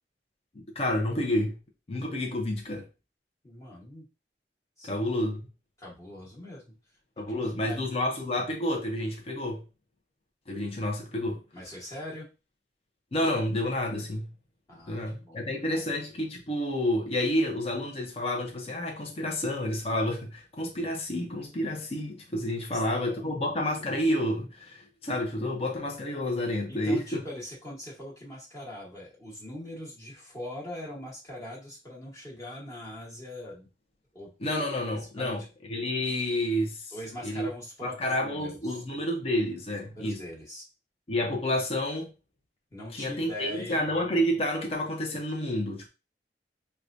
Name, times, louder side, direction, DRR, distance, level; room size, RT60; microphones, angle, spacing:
voice 1, 0.5-1.6 1.9-2.9 4.8-5.4 7.2-9.6 10.5-11.4 13.1-14.3 14.9-27.2 34.4-35.4 35.7-36.9 37.2-37.5 37.8-40.2 41.1-42.1 42.9-45.9, left 1 dB, 35° left, 0.6 m, -29 dB
voice 2, 3.4-4.1 4.8-5.2 5.8-6.7 7.2-7.8 11.5-12.3 14.7-15.0 15.3-15.9 22.7-23.4 26.7-33.7 34.1-34.3 35.2-35.5 36.9-38.8 39.9-40.7 42.7-43.9, left 1 dB, 20° left, 1.2 m, -42 dB
4.7 x 2.2 x 2.5 m
head